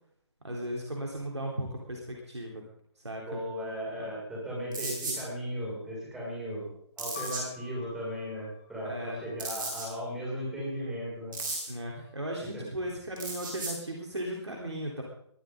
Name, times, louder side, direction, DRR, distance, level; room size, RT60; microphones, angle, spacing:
voice 1, 0.4-2.6 3.0-3.4 4.0-4.1 8.8-9.2 11.7-15.0, right 1 dB, 70° right, -1 dB, 3.8 m, -36 dB
voice 2, 3.3-6.7 7.0-11.4 12.5-12.6, equal, 5° right, -6 dB, 6.2 m, -36 dB
sound 1, 4.7-5.2 7.0-7.4 9.4-9.9 11.3-11.7 13.2-13.7, right 3 dB, 45° right, 5.7 m, -35 dB
sound 2, 7.1-11.0 11.8-12.5, left 4 dB, 25° left, 1.9 m, -50 dB
21.5 x 13.0 x 3.9 m, 0.69 s
figure-of-eight pair, 145°, 15 cm